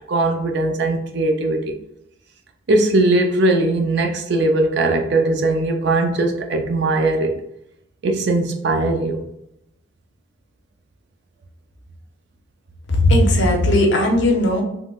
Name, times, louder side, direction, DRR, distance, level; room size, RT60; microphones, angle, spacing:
voice 1, 0.1-1.8 2.7-7.3 8.0-9.2, right 2 dB, 55° right, 3 dB, 0.4 m, -19 dB
voice 2, 13.0-14.6, left 1 dB, 60° left, 2 dB, 0.6 m, -16 dB
3.7 x 2.0 x 2.3 m, 0.81 s
head